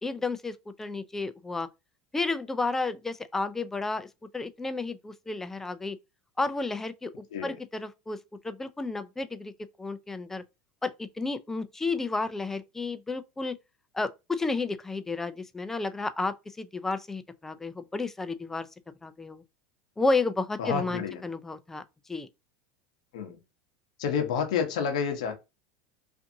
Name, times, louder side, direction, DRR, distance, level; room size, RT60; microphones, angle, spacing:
voice 1, 0.0-1.7 2.1-4.1 4.3-6.0 6.4-8.2 8.4-9.5 9.8-10.4 10.8-13.6 13.9-18.7 19.0-19.4 20.0-21.8 22.1-22.3, left 3 dB, 10° left, 0.3 m, -32 dB
voice 2, 20.6-21.2 23.1-23.4 24.0-25.3, left 6 dB, 80° left, 0.7 m, -29 dB
2.6 x 2.5 x 2.6 m
supercardioid pair, 115°, 4 cm